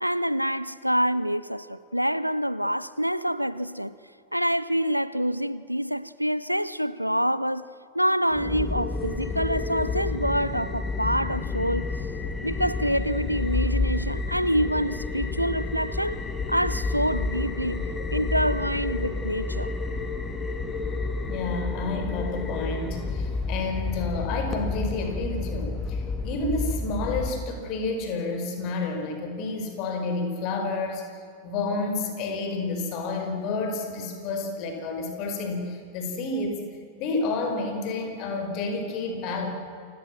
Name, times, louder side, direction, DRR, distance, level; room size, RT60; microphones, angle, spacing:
voice 1, 0.0-3.9 4.3-7.7 7.9-11.9 12.4-16.2 16.5-17.9 18.1-19.7, equal, 90° right, 0.6 m, -26 dB
sound 1, 8.3-27.3, left 3 dB, 15° left, 2.6 m, -30 dB
voice 2, 21.3-31.1 31.4-36.6 37.0-39.5, left 3 dB, 40° left, 5.0 m, -30 dB
29.0 x 17.0 x 7.6 m
figure-of-eight pair, 90°, 0 cm